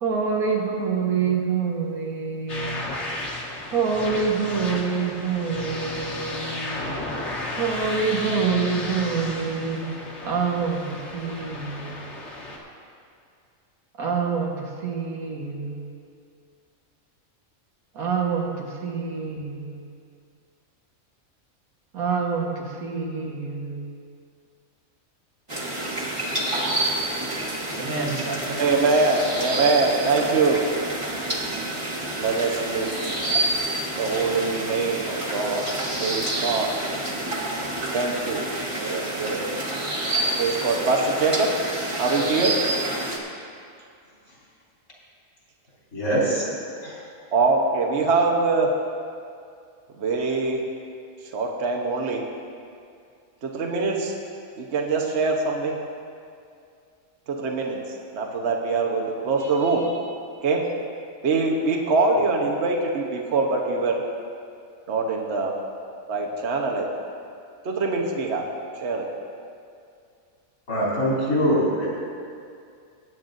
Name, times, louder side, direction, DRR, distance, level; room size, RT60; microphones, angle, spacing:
voice 1, 0.0-2.9 3.7-6.9 7.6-9.9 10.2-12.2 14.0-15.9 17.9-19.8 21.9-23.9 27.8-28.7, right 5 dB, 85° right, -1 dB, 1.9 m, -26 dB
sound 1, 2.5-12.6, left 2 dB, 55° left, 1.6 m, -33 dB
sound 2, 25.5-43.2, right 1 dB, 25° right, 1.3 m, -28 dB
voice 2, 27.1-27.5 28.6-30.6 32.2-32.9 34.0-35.7 36.0-36.7 37.9-38.5 38.8-39.4 40.4-41.5 42.0-42.6 47.3-48.7 50.0-50.6 51.3-52.2 53.4-54.2 54.6-55.8 57.3-57.8 58.1-60.1 60.4-60.7 61.2-64.0 64.9-65.5 66.1-66.9 67.6-68.5 68.7-69.1, right 3 dB, 55° right, 0 dB, 1.3 m, -23 dB
voice 3, 45.9-46.4 46.8-47.0 70.7-71.9, equal, 80° left, -7 dB, 3.8 m, -23 dB
20.5 x 9.0 x 2.6 m, 2.4 s
omnidirectional pair, 1.5 m